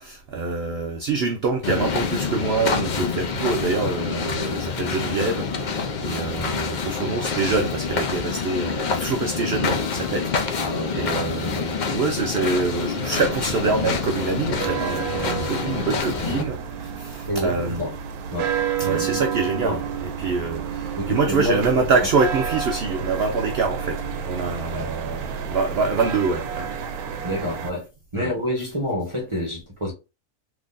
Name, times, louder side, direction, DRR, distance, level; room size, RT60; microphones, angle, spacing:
voice 1, 0.0-17.8 18.8-26.7 28.1-28.3, right 4 dB, 60° right, 0.6 m, -25 dB
sound 1, 1.6-16.4, left 5 dB, 75° left, 0.4 m, -27 dB
voice 2, 10.6-11.3 17.3-18.0 18.3-18.5 18.9-19.3 19.6-19.8 21.0-21.8 24.7-24.9 27.2-27.9 28.1-29.9, left 1 dB, 25° right, 0.8 m, -28 dB
sound 2, 13.0-27.7, right 7 dB, 85° right, 1.1 m, -30 dB
3.7 x 3.0 x 2.5 m
omnidirectional pair, 1.5 m